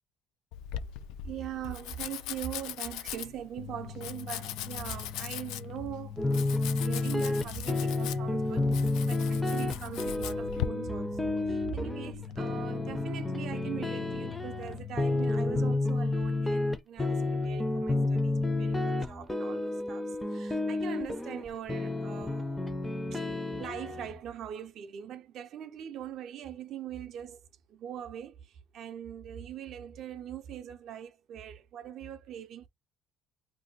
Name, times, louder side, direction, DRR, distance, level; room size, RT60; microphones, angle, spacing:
Domestic sounds home sounds, 0.5-10.7, left 12 dB, 90° left, 0.3 m, -40 dB
voice 1, 1.2-22.6 23.1-23.3 23.6-32.7, right 9 dB, 55° right, 0.4 m, -42 dB
sound 1, 3.6-15.8, left 8 dB, 50° left, 0.6 m, -43 dB
sound 2, 6.2-24.2, left 2 dB, 5° left, 0.4 m, -30 dB
2.5 x 2.2 x 3.8 m
cardioid pair, 155°, 0 cm